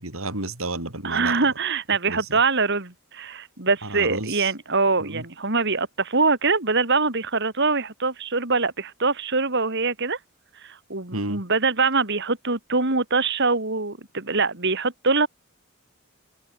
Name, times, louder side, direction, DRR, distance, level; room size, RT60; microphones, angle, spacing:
voice 1, 0.0-1.3 2.1-2.4 3.8-4.5 5.0-5.2 11.1-11.4, right 2 dB, 80° right, 7.4 m, -31 dB
voice 2, 1.0-10.2 10.6-15.3, right 4 dB, 55° right, 3.2 m, -23 dB
head